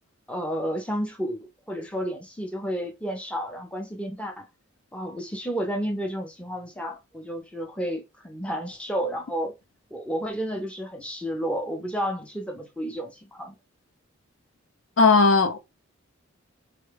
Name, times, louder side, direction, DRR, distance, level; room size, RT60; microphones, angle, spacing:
voice 1, 0.3-4.5 4.9-9.5 9.9-13.5, equal, 5° left, 0.5 m, -31 dB
voice 2, 15.0-15.6, left 4 dB, 70° left, 0.5 m, -17 dB
3.6 x 2.2 x 3.2 m
head